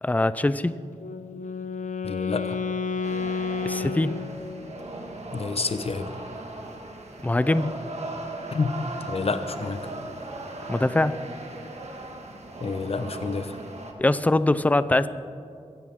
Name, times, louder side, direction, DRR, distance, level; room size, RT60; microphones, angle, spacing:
voice 1, 0.0-0.8 3.6-4.1 7.2-7.7 10.7-11.1 14.0-15.1, left 2 dB, 10° left, 14 dB, 0.5 m, -22 dB
Wind instrument woodwind instrument, 1.0-4.9, left 5 dB, 80° left, 0.7 m, -31 dB
voice 2, 2.0-2.6 5.3-6.1 8.5-8.8 9.0-9.9 12.6-13.6, left 4 dB, 50° left, 9 dB, 1.0 m, -29 dB
sound 1, 3.0-13.9, right 2 dB, 60° right, 1.8 m, -38 dB
22.5 x 15.5 x 3.7 m, 2.4 s
wide cardioid pair, 100°, 13 cm